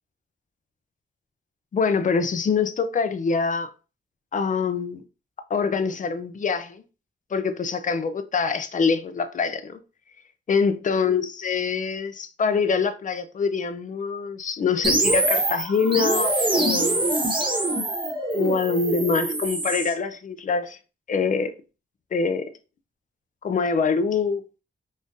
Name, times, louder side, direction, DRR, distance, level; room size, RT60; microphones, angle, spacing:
voice 1, 1.7-3.7 4.3-5.0 5.5-6.8 7.3-9.8 10.5-17.1 18.3-20.8 21.1-21.5 22.1-22.5 23.4-24.4, left 5 dB, 40° left, 0.4 m, -24 dB
sound 1, 14.8-19.9, right 2 dB, 25° right, 0.6 m, -24 dB
3.6 x 2.4 x 2.6 m
wide cardioid pair, 135°, 21 cm